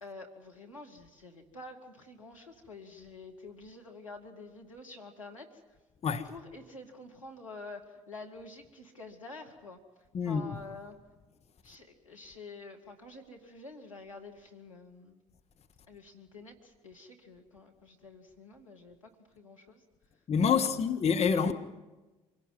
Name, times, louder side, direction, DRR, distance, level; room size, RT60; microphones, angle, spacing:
voice 1, 0.0-5.6 6.2-9.8 10.3-11.0 11.6-15.2 15.9-19.8 20.5-20.7, left 3 dB, 90° left, 2.1 m, -48 dB
voice 2, 20.3-21.5, left 6 dB, 40° left, 1.5 m, -27 dB
26.0 x 17.5 x 9.4 m
figure-of-eight pair, 55°, 16 cm